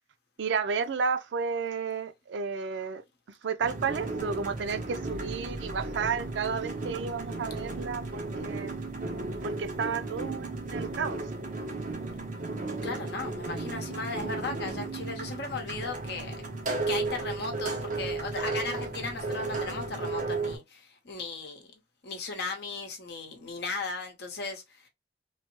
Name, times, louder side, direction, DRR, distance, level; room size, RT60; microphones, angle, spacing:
voice 1, 0.4-3.0 3.4-8.7 9.4-11.2, right 5 dB, 75° right, 0.4 m, -32 dB
sound 1, 3.6-20.6, right 3 dB, 45° right, 0.8 m, -34 dB
voice 2, 12.8-16.4 16.9-24.9, left 3 dB, 60° left, 0.9 m, -36 dB
3.1 x 2.1 x 3.0 m
head